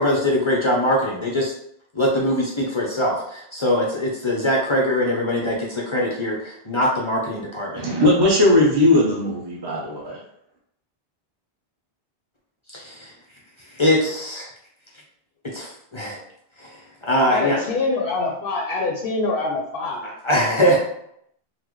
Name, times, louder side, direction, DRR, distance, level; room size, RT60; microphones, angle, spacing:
voice 1, 0.0-1.5 1.9-7.8 12.7-13.1 13.7-14.5 15.4-16.2 16.6-16.7 17.0-17.6 20.2-20.8, equal, 35° left, -3 dB, 0.5 m, -22 dB
voice 2, 7.8-10.2, left 1 dB, 25° right, -4 dB, 0.7 m, -18 dB
voice 3, 17.2-20.1 20.4-20.8, left 3 dB, 70° left, 0 dB, 0.8 m, -25 dB
4.0 x 2.0 x 3.0 m, 0.73 s
omnidirectional pair, 1.1 m